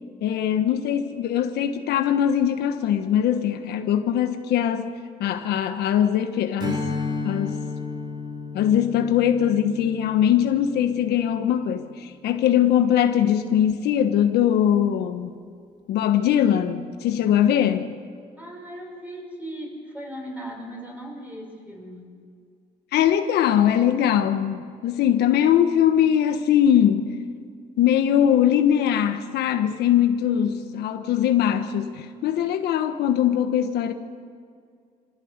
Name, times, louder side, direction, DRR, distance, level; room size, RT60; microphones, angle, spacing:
voice 1, 0.2-6.8 7.2-7.6 8.5-15.3 15.9-17.9 22.9-27.1 27.8-33.9, left 10 dB, 75° left, 1.3 m, -21 dB
Strum, 6.6-11.4, left 3 dB, 25° right, 3.7 m, -33 dB
voice 2, 18.4-22.1, right 1 dB, 10° right, 6.4 m, -37 dB
25.5 x 15.0 x 8.1 m
cardioid pair, 110°, 17 cm